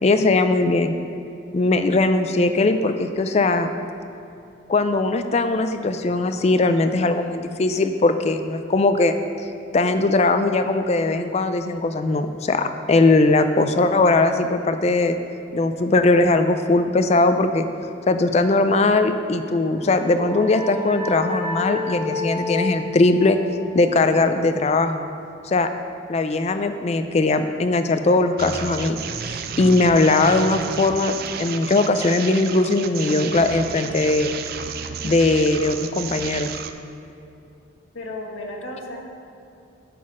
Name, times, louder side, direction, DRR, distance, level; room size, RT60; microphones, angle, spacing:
voice 1, 0.0-0.9 1.5-3.7 4.7-9.2 9.7-15.2 15.5-17.7 18.1-23.4 23.7-25.0 25.4-25.7 26.1-29.0 29.3-34.3 35.0-36.5, left 2 dB, 30° left, 8 dB, 0.3 m, -20 dB
sound 1, 19.7-25.0, left 3 dB, 10° right, 0.7 m, -31 dB
sound 2, 28.4-36.7, right 7 dB, 50° right, 0.4 m, -32 dB
voice 2, 37.9-39.0, left 1 dB, 85° left, -1 dB, 1.2 m, -33 dB
10.0 x 4.1 x 6.2 m, 2.7 s
head